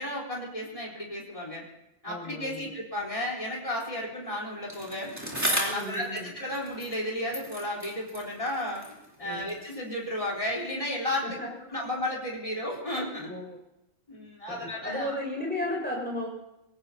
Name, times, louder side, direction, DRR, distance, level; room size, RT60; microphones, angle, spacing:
voice 1, 0.0-1.6 2.0-5.1 5.5-8.8 9.2-11.3 11.7-13.3 14.1-15.2, left 1 dB, 25° left, -4 dB, 3.8 m, -33 dB
voice 2, 2.1-2.7 5.7-6.3 9.2-9.5 11.2-11.5 13.3-13.6 14.5-16.3, left 1 dB, 10° left, -2 dB, 5.7 m, -34 dB
Bicycle, 4.7-7.1 7.3-9.7 10.5-10.6, equal, 15° right, 3.2 m, -35 dB
26.0 x 17.0 x 2.8 m, 0.89 s
omnidirectional pair, 1.3 m